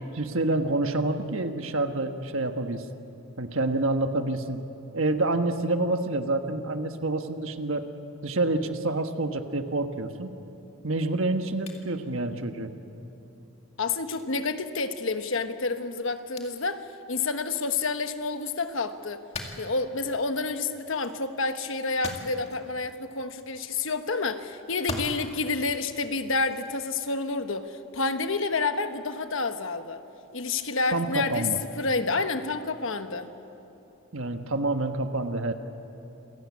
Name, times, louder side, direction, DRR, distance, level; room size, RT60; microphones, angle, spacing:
voice 1, 0.1-2.8 3.4-4.6 4.9-7.9 8.2-10.3 10.8-12.7 30.9-31.6 34.1-35.5, right 2 dB, 65° right, 7 dB, 1.4 m, -27 dB
sound 1, 11.7-11.8 13.3-13.4 14.1-14.3 16.4-16.7 17.4-17.9 18.3-19.9 20.9-21.2 21.8-22.6 23.6-23.9 24.7-25.5 26.4-26.7 27.2-27.4, left 2 dB, 30° left, 2.1 m, -40 dB
voice 2, 13.8-19.2 19.6-30.0 30.3-31.5 31.8-33.3, left 3 dB, 60° left, 8 dB, 1.2 m, -29 dB
27.5 x 17.0 x 8.5 m, 3.0 s
head